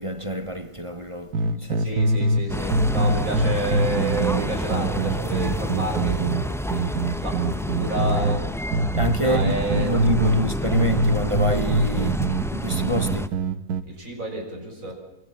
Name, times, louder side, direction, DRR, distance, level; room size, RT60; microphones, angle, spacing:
voice 1, 0.0-1.9 8.9-12.2 12.5-13.3, right 1 dB, 20° right, 1.6 m, -27 dB
sound 1, 1.3-2.5 2.7-8.4 8.7-10.5 10.7-13.8, right 2 dB, 85° right, 2.0 m, -23 dB
voice 2, 1.8-8.4 9.2-9.9 13.9-14.9, right 2 dB, 60° right, 6.8 m, -30 dB
sound 2, 2.5-13.3, equal, ahead, 0.8 m, -29 dB
28.5 x 27.5 x 7.5 m
omnidirectional pair, 1.6 m